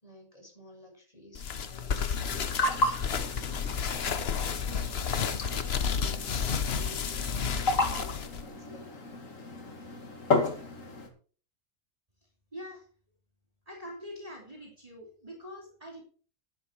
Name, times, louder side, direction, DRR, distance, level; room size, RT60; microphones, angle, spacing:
voice 1, 0.0-3.0 3.5-9.1, left 1 dB, 25° left, 0 dB, 6.5 m, -52 dB
sound 1, 1.3-8.4, left 6 dB, 50° left, 1.1 m, -31 dB
sound 2, 2.2-11.1, left 2 dB, 75° left, 2.6 m, -33 dB
voice 2, 12.5-12.8 13.7-16.0, equal, 25° right, -1 dB, 3.1 m, -44 dB
11.5 x 11.0 x 4.5 m, 0.41 s
omnidirectional pair, 1.4 m